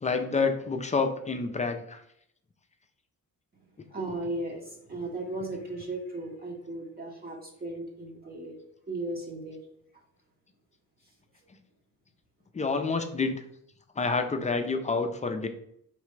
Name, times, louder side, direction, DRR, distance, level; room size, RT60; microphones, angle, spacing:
voice 1, 0.0-2.0 12.5-13.4 14.0-15.5, left 4 dB, 20° left, 6 dB, 0.4 m, -28 dB
voice 2, 3.9-8.6 8.9-9.6, right 2 dB, 25° right, -1 dB, 0.8 m, -36 dB
4.8 x 3.3 x 3.1 m, 0.71 s
cardioid pair, 135°, 34 cm